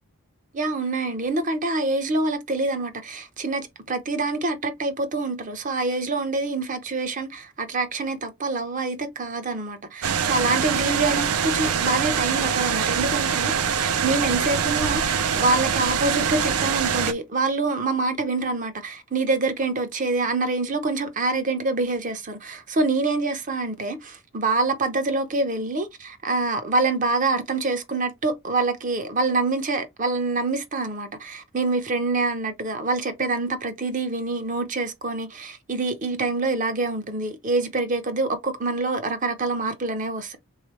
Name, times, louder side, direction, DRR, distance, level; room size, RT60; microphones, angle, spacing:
voice 1, 0.5-40.4, right 3 dB, 35° right, 0.6 m, -26 dB
sound 1, 10.0-17.1, right 7 dB, 85° right, 0.5 m, -24 dB
3.6 x 3.2 x 3.1 m
head